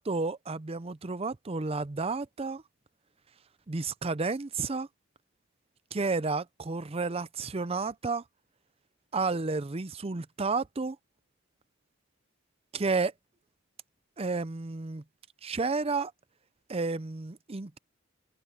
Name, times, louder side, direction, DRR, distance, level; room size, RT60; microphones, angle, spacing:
voice 1, 0.0-2.6 3.7-4.9 5.9-8.2 9.1-11.0 12.7-13.1 14.2-15.0 15.4-16.1 16.7-17.8, right 4 dB, 30° right, 0.6 m, -31 dB
head